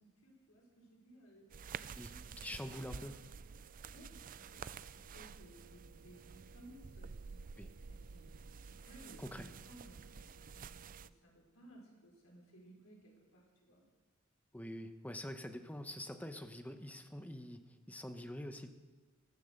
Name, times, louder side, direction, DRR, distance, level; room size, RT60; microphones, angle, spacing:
voice 1, 0.0-1.5 1.7-3.0 3.9-7.4 7.9-13.9, right 1 dB, 80° left, -1 dB, 5.1 m, -60 dB
sound 1, 1.5-11.1, right 6 dB, 40° right, 0.4 m, -50 dB
voice 2, 2.4-3.1 7.6-7.7 9.2-9.5 14.5-17.6 17.9-18.7, left 1 dB, 5° left, 7 dB, 1.0 m, -45 dB
14.5 x 13.5 x 6.6 m, 1.4 s
head